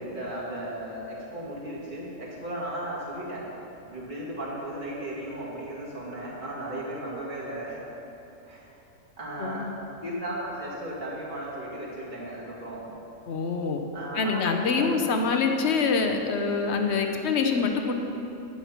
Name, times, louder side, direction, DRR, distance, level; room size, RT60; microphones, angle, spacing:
voice 1, 0.0-3.5 3.9-7.8 8.4-8.7 9.2-9.7 10.0-13.0 13.9-15.0, right 1 dB, 40° right, -6 dB, 2.5 m, -35 dB
voice 2, 9.4-9.7 13.3-13.8 14.1-17.9, left 5 dB, 60° left, 4 dB, 1.1 m, -25 dB
9.9 x 8.9 x 5.9 m, 2.9 s
omnidirectional pair, 1.4 m